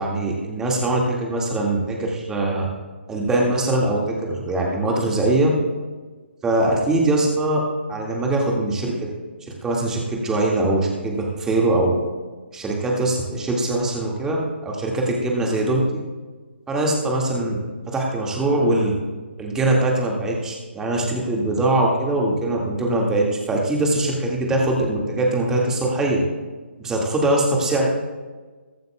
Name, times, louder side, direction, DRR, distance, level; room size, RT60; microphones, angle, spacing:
voice 1, 0.0-2.6 3.1-5.5 6.4-7.6 7.9-8.9 9.6-12.0 12.5-15.8 16.7-17.6 17.9-18.9 19.4-26.2 26.8-27.9, right 2 dB, 10° right, -2 dB, 2.0 m, -22 dB
22.5 x 9.1 x 2.3 m, 1.4 s
figure-of-eight pair, 140°, 6 cm